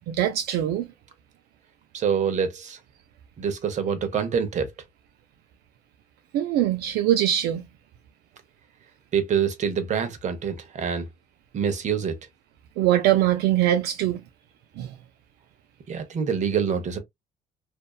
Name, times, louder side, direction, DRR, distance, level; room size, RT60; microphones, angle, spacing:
voice 1, 0.1-0.9 6.3-7.6 12.8-14.2 14.8-14.9, right 12 dB, 75° right, 0.4 m, -22 dB
voice 2, 1.9-2.8 3.4-4.7 9.1-11.1 11.5-12.2 15.9-17.0, right 7 dB, 45° right, 0.8 m, -26 dB
2.6 x 2.2 x 2.3 m
cardioid pair, 110°, 17 cm